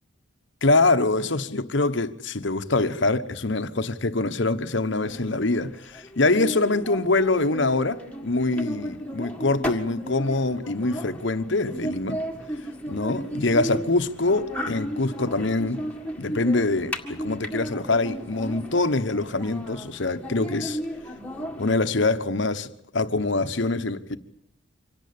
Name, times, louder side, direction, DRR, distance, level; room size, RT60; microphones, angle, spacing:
voice 1, 0.6-12.2 12.9-15.8 16.2-20.8 21.6-24.2, left 2 dB, 60° left, 1.1 m, -24 dB
sound 1, 5.0-21.7, equal, 5° left, 1.8 m, -35 dB
25.5 x 17.5 x 8.7 m
head